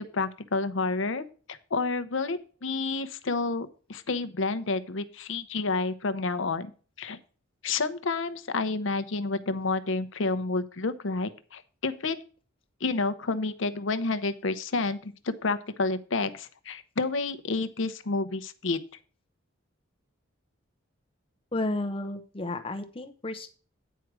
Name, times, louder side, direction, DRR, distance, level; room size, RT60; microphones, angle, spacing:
voice 1, 0.0-6.7 7.0-7.2 7.6-12.2 12.8-18.8, left 3 dB, 70° left, 12 dB, 0.8 m, -30 dB
voice 2, 21.5-23.5, left 2 dB, 25° left, 6 dB, 0.8 m, -32 dB
9.2 x 4.7 x 6.1 m, 0.38 s
head